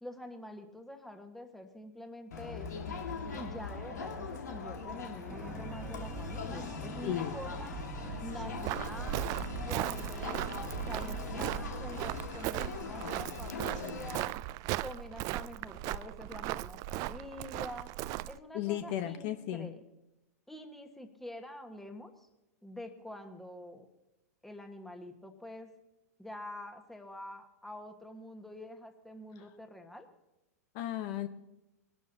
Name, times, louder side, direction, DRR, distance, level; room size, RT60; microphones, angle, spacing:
voice 1, 0.0-2.8 3.3-7.7 8.2-9.3 9.6-14.4 14.8-17.9 18.3-19.8 20.5-22.3 22.6-23.9 24.4-25.7 26.2-30.1, left 1 dB, 5° left, 5 dB, 1.4 m, -46 dB
Crowd, 2.3-14.2, left 5 dB, 90° left, 1.9 m, -42 dB
sound 1, 5.3-12.2, right 2 dB, 20° right, 1.6 m, -42 dB
voice 2, 7.0-7.4 18.5-19.7 30.7-31.3, left 12 dB, 50° left, 9 dB, 0.9 m, -34 dB
Walk footsteps, 8.6-18.4, right 16 dB, 40° right, 0.3 m, -37 dB
21.0 x 12.0 x 2.8 m, 0.95 s
hypercardioid pair, 115°, 9 cm